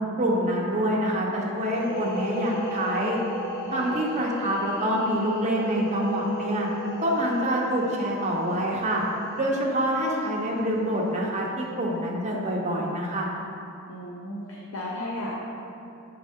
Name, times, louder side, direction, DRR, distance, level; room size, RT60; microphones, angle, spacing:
voice 1, 0.2-3.2 3.7-6.7 7.0-9.0 9.4-13.3, equal, 35° right, -3 dB, 0.8 m, -26 dB
sound 1, 1.6-11.1, left 1 dB, 50° left, 0.8 m, -37 dB
voice 2, 3.7-4.0 13.9-15.3, left 1 dB, 80° left, -5 dB, 0.8 m, -35 dB
6.4 x 4.7 x 3.6 m, 2.7 s
head